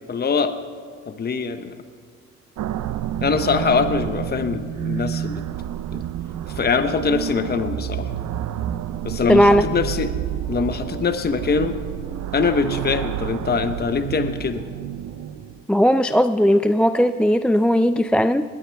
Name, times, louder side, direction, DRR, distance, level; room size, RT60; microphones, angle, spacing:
voice 1, 0.1-0.6 1.1-1.7 3.2-5.4 5.9-6.0 6.5-8.1 9.0-10.1 10.5-11.8 12.3-14.6, left 5 dB, 30° left, 9 dB, 0.9 m, -23 dB
sound 1, 2.6-15.6, right 11 dB, 70° right, 0.7 m, -29 dB
voice 2, 9.3-9.6 15.7-18.4, equal, 5° left, 10 dB, 0.4 m, -17 dB
20.5 x 15.0 x 3.5 m, 2.1 s
cardioid pair, 90°, 30 cm